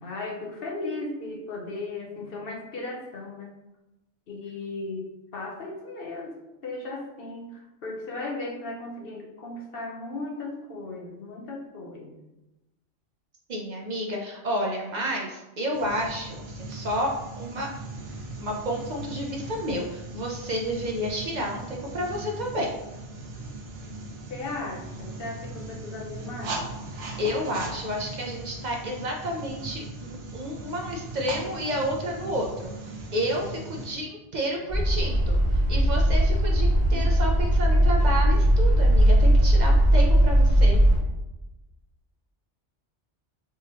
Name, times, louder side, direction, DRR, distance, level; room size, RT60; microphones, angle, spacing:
voice 1, 0.0-3.5 4.3-6.3 6.6-12.1 24.3-26.7 36.9-37.0, left 2 dB, 60° left, -1 dB, 0.8 m, -36 dB
voice 2, 13.5-17.1 17.4-17.7 18.4-22.7 26.9-35.4 35.7-40.8, equal, 55° right, 0 dB, 0.5 m, -30 dB
sound 1, 15.7-33.9, right 2 dB, 85° right, 1.0 m, -39 dB
sound 2, 34.7-41.0, equal, 5° left, 1.4 m, -19 dB
3.5 x 2.9 x 2.9 m, 0.98 s
omnidirectional pair, 1.2 m